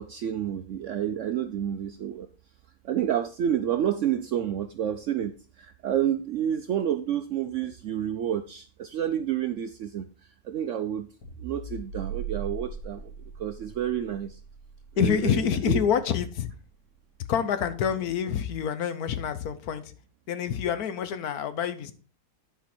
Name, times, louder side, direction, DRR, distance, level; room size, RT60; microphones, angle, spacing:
voice 1, 0.0-2.3 2.8-10.0 10.4-11.1 11.4-13.1 13.4-14.4 15.0-15.4 15.7-15.8, right 10 dB, 70° right, 0.7 m, -29 dB
sound 1, 11.2-15.7, right 5 dB, 85° left, 2.8 m, -39 dB
voice 2, 15.0-16.5 17.3-19.9 20.3-21.9, left 8 dB, 70° left, 1.2 m, -27 dB
10.5 x 4.9 x 4.3 m
omnidirectional pair, 1.7 m